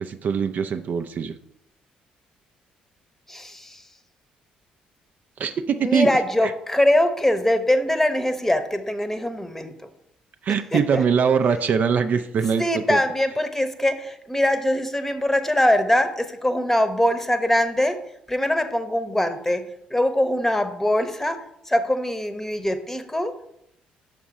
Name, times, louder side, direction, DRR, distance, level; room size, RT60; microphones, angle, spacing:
voice 1, 0.0-1.4 5.4-6.1 6.4-6.5 10.4-13.0, right 6 dB, 50° right, 9 dB, 0.4 m, -22 dB
voice 2, 3.3-3.8 5.8-9.7 10.5-11.0 12.6-18.0 18.3-19.6 19.9-21.4 21.7-23.3, left 1 dB, 10° left, 9 dB, 0.9 m, -22 dB
6.1 x 5.1 x 4.7 m, 0.76 s
figure-of-eight pair, 45°, 4 cm